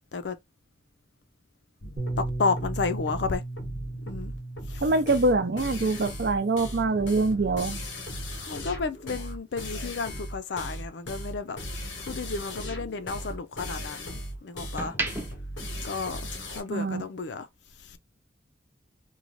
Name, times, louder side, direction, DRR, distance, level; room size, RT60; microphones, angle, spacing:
sound 1, 1.8-16.6, equal, 85° left, 0.9 m, -37 dB
Bass guitar, 2.0-8.2, right 2 dB, 35° right, 0.9 m, -37 dB
voice 1, 2.2-3.4 4.1-4.3 4.7-4.9 8.5-11.6 12.0-15.0 15.8-16.2 16.5-17.5 17.8-18.0, left 4 dB, 65° left, 0.5 m, -32 dB
voice 2, 4.8-7.8 16.7-17.0, right 2 dB, 60° right, 0.6 m, -24 dB
sound 2, 10.5-12.3 12.7-14.1 14.5-16.7 17.0-17.2, right 2 dB, 10° right, 0.5 m, -38 dB
3.1 x 2.3 x 2.5 m
head